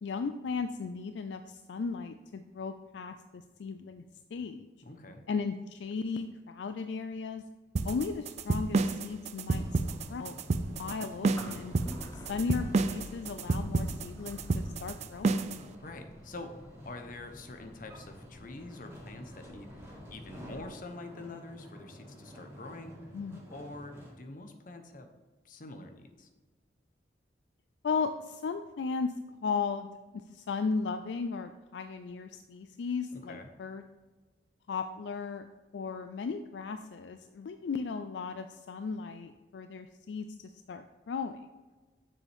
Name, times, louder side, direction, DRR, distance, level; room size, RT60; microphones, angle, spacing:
voice 1, 0.0-4.0 4.3-4.7 5.3-7.4 7.8-9.7 10.1-10.4 10.7-11.7 12.3-15.4 23.1-23.4 27.8-29.9 30.1-33.8 34.7-35.5 35.7-41.5, left 5 dB, 70° left, 9 dB, 0.4 m, -36 dB
voice 2, 4.8-5.2 15.8-16.5 16.8-22.9 23.5-25.1 25.4-26.3 33.1-33.5, left 2 dB, 45° left, 6 dB, 0.9 m, -46 dB
sound 1, 7.8-15.6, right 3 dB, 35° right, 0.4 m, -30 dB
sound 2, 9.3-20.7, left 1 dB, 15° left, 0.8 m, -50 dB
sound 3, 9.5-24.1, equal, 15° right, 1.8 m, -52 dB
7.0 x 6.9 x 3.5 m, 1.3 s
head